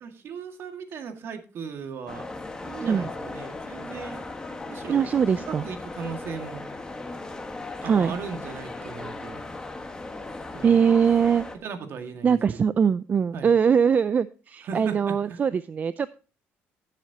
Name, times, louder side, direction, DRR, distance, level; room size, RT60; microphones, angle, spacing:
voice 1, 0.0-2.2 2.6-4.2 4.7-5.0 5.4-6.6 7.8-9.5 10.5-10.8 11.6-12.4 13.3-13.5 14.6-15.4, right 5 dB, 55° right, 6 dB, 1.9 m, -37 dB
sound 1, 2.1-11.6, left 2 dB, 15° left, 1.3 m, -37 dB
voice 2, 4.9-5.6 7.8-8.1 10.6-11.5 12.2-16.2, right 7 dB, 35° right, 15 dB, 0.4 m, -22 dB
16.5 x 7.4 x 2.8 m, 0.35 s
cardioid pair, 120°, 5 cm